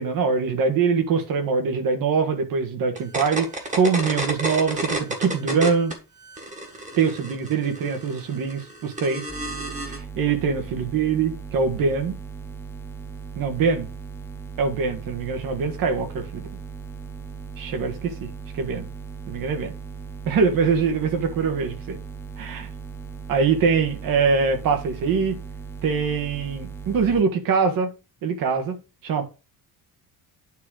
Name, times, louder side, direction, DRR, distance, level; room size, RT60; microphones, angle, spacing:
voice 1, 0.0-5.9 7.0-9.3 9.8-12.2 13.3-13.9 14.6-16.5 17.6-18.9 19.3-19.7 20.2-22.0 22.4-22.7 23.3-25.4 25.8-27.9 28.2-29.2, right 5 dB, 55° right, 1.6 m, -23 dB
sound 1, 3.0-5.9 6.2-10.0, right 1 dB, 20° right, 1.5 m, -30 dB
sound 2, 9.3-27.2, right 5 dB, 5° left, 0.5 m, -38 dB
9.3 x 3.8 x 4.9 m
cardioid pair, 175°, 40 cm